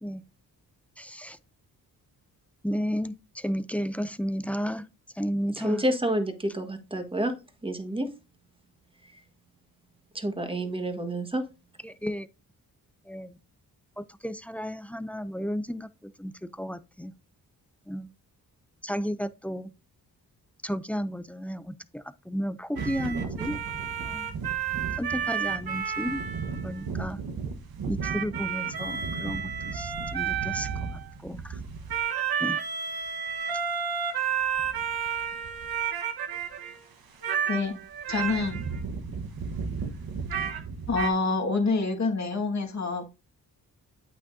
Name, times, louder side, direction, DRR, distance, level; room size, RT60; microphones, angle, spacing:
voice 1, 1.0-1.4 2.6-4.9 5.1-5.8 11.8-12.3 13.1-13.4 14.0-17.1 17.9-18.1 18.8-19.7 20.6-23.6 24.0-24.3 25.0-26.2 26.6-27.2 27.9-31.6 32.4-32.6, equal, 5° left, 0.5 m, -33 dB
voice 2, 5.5-7.3 7.6-8.1 9.1-9.2 10.1-11.4, right 1 dB, 15° right, 1.5 m, -29 dB
sound 1, 22.8-36.8 37.2-41.1, right 7 dB, 70° right, 1.3 m, -31 dB
voice 3, 37.5-37.8 38.1-38.6 40.9-43.1, left 3 dB, 45° left, 1.8 m, -27 dB
8.6 x 6.1 x 2.7 m
cardioid pair, 80°, 38 cm